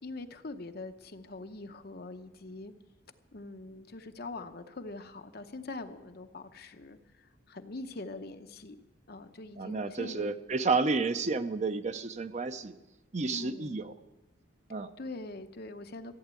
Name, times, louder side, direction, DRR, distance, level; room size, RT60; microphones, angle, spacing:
voice 1, 0.0-2.7 3.3-8.8 9.1-10.3 13.3-13.8 15.0-16.2, left 2 dB, 50° left, 7 dB, 0.8 m, -43 dB
voice 2, 9.6-12.7 13.1-13.9 14.7-14.9, right 4 dB, 35° right, 11 dB, 0.6 m, -31 dB
14.5 x 9.2 x 8.3 m, 1.1 s
head